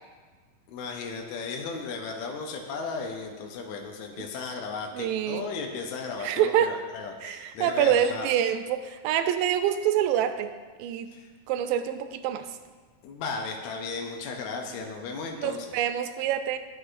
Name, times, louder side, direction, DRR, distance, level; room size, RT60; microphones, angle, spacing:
voice 1, 0.7-8.3 11.1-11.3 13.0-15.7, left 4 dB, 75° left, 1 dB, 1.8 m, -35 dB
voice 2, 5.0-5.4 6.2-6.8 7.2-10.5 10.8-11.1 11.5-12.5 15.4-16.6, right 10 dB, 85° right, 9 dB, 2.3 m, -26 dB
13.5 x 6.3 x 2.5 m, 1.4 s
omnidirectional pair, 4.0 m